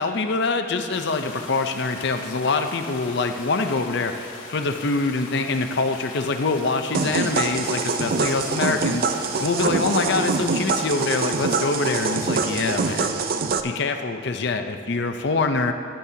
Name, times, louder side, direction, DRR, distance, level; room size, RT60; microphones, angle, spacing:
voice 1, 0.0-13.2 13.6-15.7, left 3 dB, 55° left, 6 dB, 0.6 m, -25 dB
sound 1, 0.9-13.1, left 3 dB, 85° left, 1.3 m, -41 dB
sound 2, 6.9-13.6, right 4 dB, 45° right, 0.4 m, -24 dB
14.0 x 10.5 x 2.8 m, 2.3 s
head